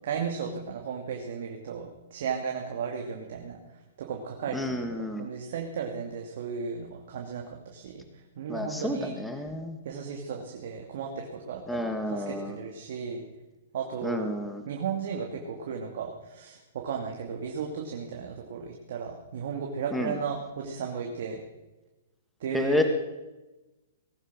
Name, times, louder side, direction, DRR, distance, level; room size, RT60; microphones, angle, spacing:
voice 1, 0.0-3.6 4.0-8.0 8.4-9.1 9.8-13.2 13.7-14.3 14.7-21.4 22.4-22.8, right 6 dB, 60° right, 1 dB, 2.4 m, -35 dB
voice 2, 4.5-5.3 8.5-9.8 11.7-12.6 14.0-14.6 19.9-20.2 22.5-22.8, left 1 dB, 5° left, 5 dB, 1.6 m, -30 dB
19.0 x 9.7 x 6.2 m, 1.1 s
hypercardioid pair, 140°, 0 cm